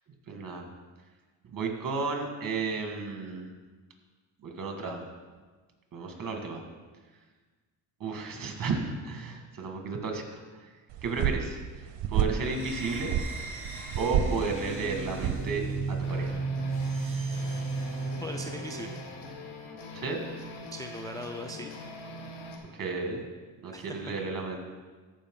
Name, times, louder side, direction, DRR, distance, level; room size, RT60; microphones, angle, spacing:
voice 1, 0.3-0.6 1.4-3.5 4.4-5.0 5.9-6.6 8.0-10.7 11.0-13.1 14.0-16.4 19.9-20.2 22.7-23.3 23.6-24.6, right 4 dB, 45° right, 3 dB, 1.8 m, -33 dB
sound 1, 10.9-16.3, right 9 dB, 60° right, 0.8 m, -31 dB
sound 2, 12.4-19.0, right 4 dB, 25° right, 2.3 m, -34 dB
sound 3, 16.0-22.6, left 2 dB, 75° left, 1.3 m, -42 dB
voice 2, 18.2-19.0 20.7-21.7 23.7-24.0, equal, 10° left, 3 dB, 0.4 m, -39 dB
14.0 x 5.2 x 3.7 m, 1.4 s
cardioid pair, 85°, 47 cm